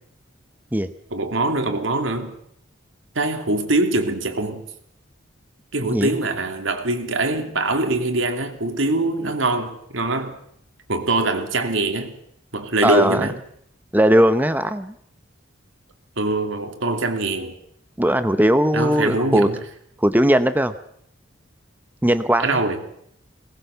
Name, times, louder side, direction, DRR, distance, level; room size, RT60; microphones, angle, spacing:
voice 1, 1.1-2.3 3.1-4.6 5.7-10.4 10.9-12.1 12.5-13.4 16.2-17.5 18.7-19.6 22.4-22.8, right 2 dB, 80° right, 5 dB, 2.8 m, -23 dB
voice 2, 12.8-13.3 13.9-14.9 18.0-19.5 20.0-20.7 22.0-22.6, right 1 dB, 10° right, 10 dB, 0.8 m, -18 dB
22.0 x 19.0 x 6.9 m, 0.70 s
head